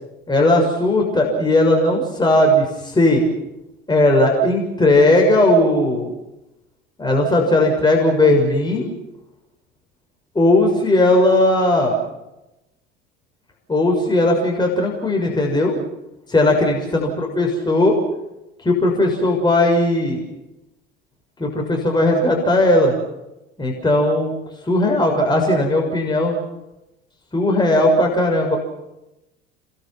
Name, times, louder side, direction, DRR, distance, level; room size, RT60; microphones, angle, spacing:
voice 1, 0.3-3.2 3.9-6.1 7.0-8.9 10.3-12.0 13.7-15.8 16.3-18.0 18.6-20.2 21.4-22.9 23.6-24.3 24.6-26.4 27.3-28.6, left 1 dB, 15° left, 0 dB, 6.5 m, -17 dB
29.0 x 22.5 x 5.9 m, 0.93 s
figure-of-eight pair, 65°, 31 cm